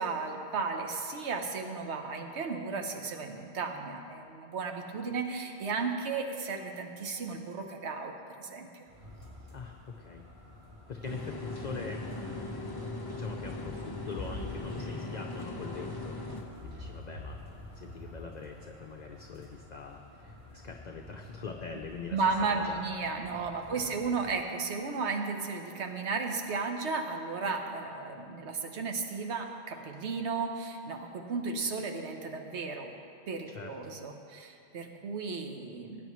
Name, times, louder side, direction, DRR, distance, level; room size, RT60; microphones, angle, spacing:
voice 1, 0.0-8.8 22.1-32.9 33.3-36.1, right 4 dB, 80° right, 4 dB, 1.2 m, -34 dB
sound 1, 8.9-24.4, left 2 dB, 35° right, 3.3 m, -49 dB
voice 2, 9.5-16.2 16.6-17.4 17.8-22.2 22.5-22.8 23.7-24.0 33.5-33.9, left 5 dB, 50° left, 3 dB, 0.6 m, -43 dB
sound 2, 11.0-16.4, left 2 dB, 20° left, 0.9 m, -39 dB
19.0 x 9.2 x 3.1 m, 2.6 s
omnidirectional pair, 1.1 m